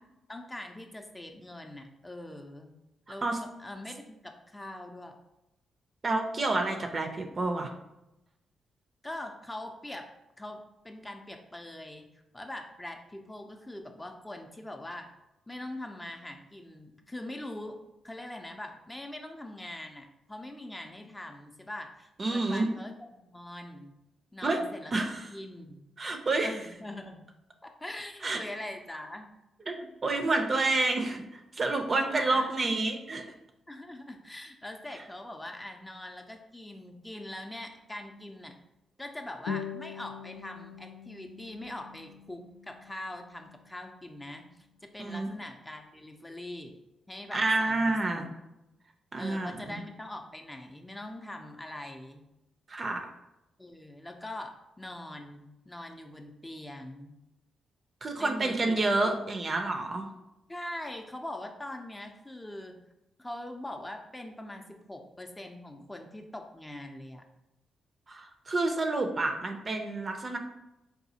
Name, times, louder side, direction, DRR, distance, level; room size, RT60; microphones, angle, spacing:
voice 1, 0.3-2.7 3.1-5.1 9.0-10.1 10.4-12.1 12.3-15.1 15.5-17.8 18.0-22.9 23.2-23.9 24.3-25.8 26.4-27.2 27.6-29.3 32.1-32.7 33.7-38.6 39.0-44.7 44.9-46.8 47.1-48.3 49.2-52.2 53.6-57.2 58.2-59.2 60.5-62.8 63.2-67.2, left 1 dB, 20° left, 4 dB, 0.5 m, -42 dB
voice 2, 6.0-7.7 22.2-22.7 24.4-24.6 24.9-25.3 26.0-26.5 28.2-28.4 29.7-33.2 45.0-45.3 47.3-48.3 49.1-49.8 52.7-53.1 58.0-60.1 68.1-70.4, right 2 dB, 45° right, 4 dB, 0.5 m, -29 dB
sound 1, 39.5-44.5, left 7 dB, 85° left, 0.3 m, -43 dB
4.0 x 2.3 x 2.7 m, 0.92 s
supercardioid pair, 50°, 0 cm